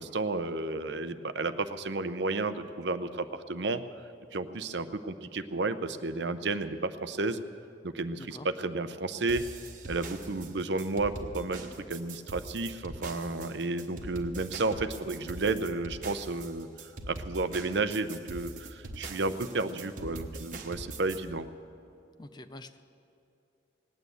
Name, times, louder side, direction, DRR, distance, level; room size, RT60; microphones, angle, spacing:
voice 1, 0.0-3.8 4.3-7.4 7.8-9.4 9.9-16.7 17.1-21.5, right 3 dB, 70° right, 11 dB, 0.7 m, -32 dB
sound 1, 9.3-21.2, right 2 dB, 45° right, 1.2 m, -42 dB
voice 2, 22.2-22.8, left 1 dB, 25° left, 10 dB, 0.5 m, -45 dB
19.0 x 9.3 x 8.1 m, 2.8 s
head